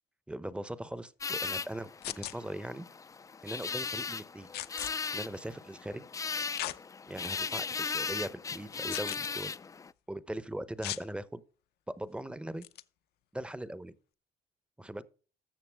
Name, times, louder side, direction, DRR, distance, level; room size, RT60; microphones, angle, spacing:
voice 1, 0.3-2.9 3.4-4.5 5.1-6.0 7.1-9.5 10.1-11.4 12.0-12.7 13.3-13.9 14.8-15.0, right 1 dB, 5° right, 0.7 m, -40 dB
sound 1, 1.2-9.9, left 5 dB, 20° left, 0.4 m, -37 dB
sound 2, 2.0-2.3 4.5-4.9 6.5-6.8 7.4-7.5 8.9-9.3 10.8-11.0 12.6-12.8, left 14 dB, 70° left, 0.6 m, -37 dB
13.5 x 6.8 x 3.4 m
cardioid pair, 110°, 17 cm